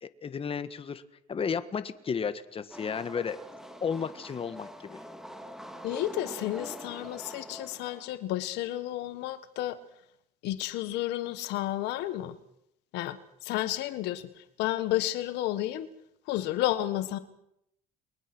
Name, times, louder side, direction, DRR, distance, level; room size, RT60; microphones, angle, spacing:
voice 1, 0.0-1.0 1.3-3.4 3.7-5.0, left 6 dB, 35° left, 11 dB, 1.6 m, -33 dB
sound 1, 2.7-8.2, equal, 5° right, 2.7 m, -45 dB
voice 2, 5.8-9.8 10.4-12.4 12.9-15.9 16.3-17.2, left 14 dB, 90° left, 12 dB, 1.6 m, -31 dB
29.5 x 22.5 x 6.3 m, 0.77 s
cardioid pair, 110°, 17 cm